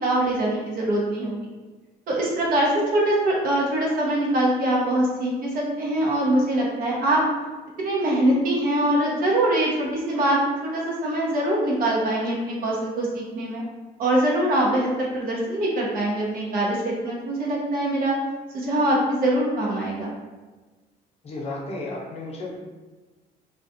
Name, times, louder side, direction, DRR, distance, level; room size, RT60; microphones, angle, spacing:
voice 1, 0.0-1.3 2.1-7.2 7.8-10.4 10.7-13.6 14.0-18.1 18.5-20.1, right 1 dB, 55° right, -4 dB, 0.7 m, -23 dB
voice 2, 21.2-22.6, left 2 dB, 40° left, -2 dB, 0.6 m, -33 dB
2.3 x 2.3 x 2.5 m, 1.2 s
cardioid pair, 110°, 17 cm